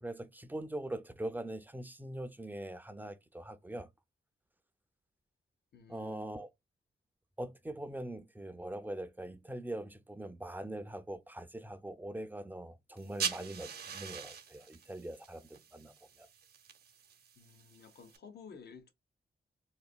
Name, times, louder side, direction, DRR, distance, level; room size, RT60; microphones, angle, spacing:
voice 1, 0.0-3.9 5.9-6.5 7.4-16.3, right 1 dB, 10° right, 0.5 m, -42 dB
voice 2, 5.7-6.3 17.4-18.9, left 6 dB, 65° left, 0.8 m, -53 dB
sound 1, 13.0-18.2, right 7 dB, 60° right, 0.7 m, -43 dB
4.0 x 2.5 x 2.3 m
cardioid pair, 90°, 18 cm